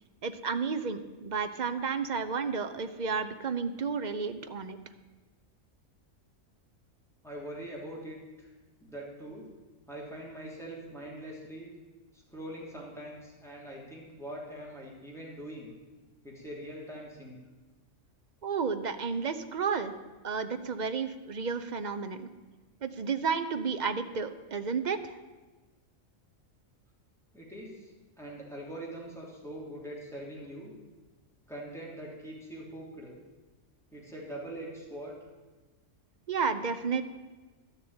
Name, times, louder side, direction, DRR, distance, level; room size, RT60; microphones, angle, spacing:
voice 1, 0.2-4.8 18.4-19.9 20.2-22.3 22.8-25.2 36.3-37.0, right 5 dB, 45° right, 10 dB, 0.7 m, -32 dB
voice 2, 7.2-8.5 8.8-9.5 9.9-11.7 12.1-15.7 16.2-17.4 27.3-30.7 31.5-33.1 33.9-35.2, right 1 dB, ahead, -4 dB, 3.0 m, -43 dB
12.0 x 7.0 x 8.8 m, 1.2 s
omnidirectional pair, 1.3 m